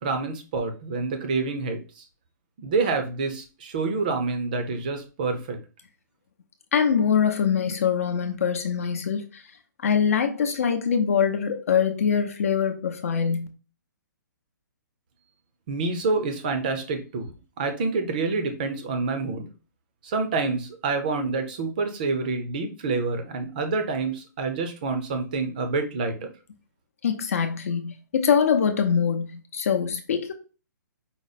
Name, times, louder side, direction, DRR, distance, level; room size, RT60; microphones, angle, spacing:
voice 1, 0.0-2.0 2.6-5.6 15.7-17.3 17.6-19.5 20.0-26.3, right 4 dB, 25° right, 0.6 m, -27 dB
voice 2, 6.7-9.4 9.8-13.5 27.0-30.3, left 7 dB, 45° left, 0.7 m, -23 dB
5.0 x 2.1 x 4.1 m
hypercardioid pair, 175°, 11 cm